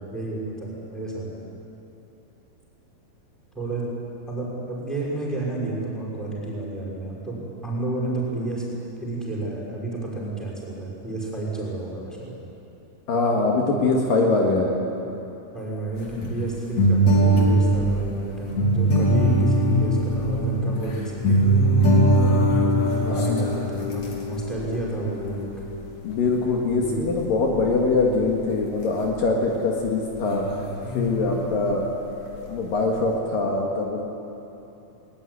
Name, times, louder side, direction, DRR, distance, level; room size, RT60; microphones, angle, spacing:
voice 1, 0.1-1.3 3.5-3.9 4.3-8.6 9.0-12.4 15.5-21.1 22.9-25.5 26.7-27.0, right 2 dB, ahead, -5 dB, 5.8 m, -31 dB
voice 2, 13.1-14.8 23.0-23.3 26.0-30.5 30.9-31.8 32.4-34.0, left 3 dB, 65° left, -1 dB, 3.4 m, -23 dB
sound 1, 16.0-25.8 26.2-26.5 27.0-28.0 28.3-28.5 30.1-31.3, right 1 dB, 50° left, 4.2 m, -21 dB
20.5 x 20.0 x 9.9 m, 3.0 s
omnidirectional pair, 4.4 m